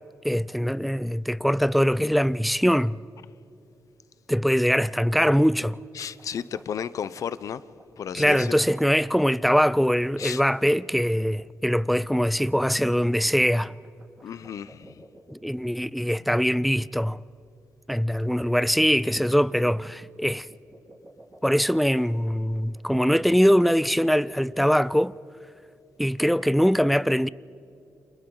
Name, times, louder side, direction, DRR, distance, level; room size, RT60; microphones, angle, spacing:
voice 1, 0.2-3.0 4.3-5.8 8.1-13.7 15.3-17.2 17.9-20.5 21.4-25.1 26.0-27.3, equal, ahead, 0.4 m, -22 dB
sound 1, 5.5-24.3, right 1 dB, 20° right, 3.9 m, -53 dB
voice 2, 5.9-7.6 8.0-8.6 10.2-10.4 14.2-15.0, left 8 dB, 60° left, 0.7 m, -33 dB
29.5 x 26.5 x 3.9 m
cardioid pair, 95°, 6 cm